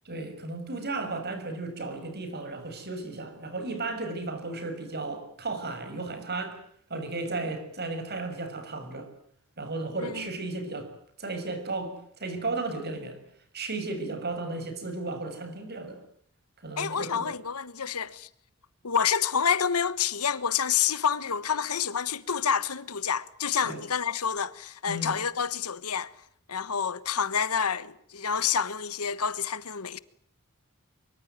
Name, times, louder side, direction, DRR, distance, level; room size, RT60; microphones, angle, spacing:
voice 1, 0.0-6.6 6.9-9.1 9.6-10.9 11.2-13.2 13.5-16.0 16.6-17.3 23.6-23.8 24.9-25.2, right 3 dB, 45° right, 6.3 m, -34 dB
voice 2, 16.8-18.3 18.8-26.1 26.5-30.0, left 7 dB, 85° left, 1.3 m, -28 dB
24.0 x 23.5 x 9.4 m
head